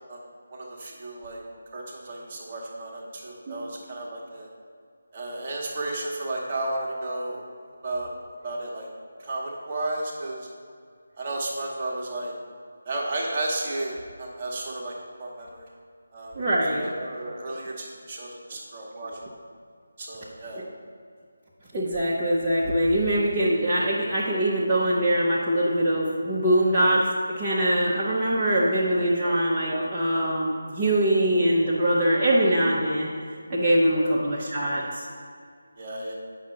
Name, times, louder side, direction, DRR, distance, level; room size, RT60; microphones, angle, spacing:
voice 1, 0.5-1.4 1.7-4.5 5.1-7.4 7.8-8.1 8.4-8.9 9.2-10.5 11.2-12.3 12.8-14.9 15.2-15.7 16.1-16.4 16.7-19.1 20.0-20.6 29.2-29.9 33.9-34.4 35.8-36.1, right 2 dB, 30° right, -2 dB, 1.2 m, -33 dB
voice 2, 16.4-16.9 21.7-33.1 33.5-35.1, right 1 dB, 10° right, -10 dB, 0.8 m, -23 dB
8.4 x 5.7 x 3.8 m, 2.2 s
figure-of-eight pair, 155°, 0 cm